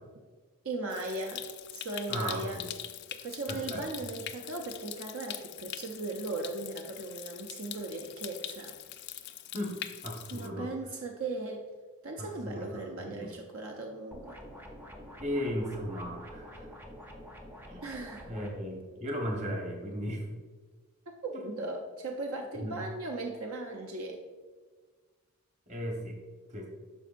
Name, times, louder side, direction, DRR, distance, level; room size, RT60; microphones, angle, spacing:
voice 1, 0.6-1.4 1.7-2.6 3.1-8.7 10.3-11.6 12.0-14.4 17.8-18.3 21.2-24.2, right 2 dB, 65° right, 2 dB, 0.6 m, -38 dB
Stream, 0.9-10.5, left 11 dB, 50° left, 0.3 m, -43 dB
voice 2, 2.1-2.7 3.5-3.8 9.5-10.7 12.2-13.3 15.2-16.7 17.7-17.8 18.3-20.2 21.3-21.6 22.6-22.8 25.7-26.1 26.5-26.7, equal, 30° right, 0 dB, 1.1 m, -36 dB
sound 1, 14.1-18.5, equal, 10° right, 0.5 m, -47 dB
11.5 x 4.5 x 2.5 m, 1.4 s
head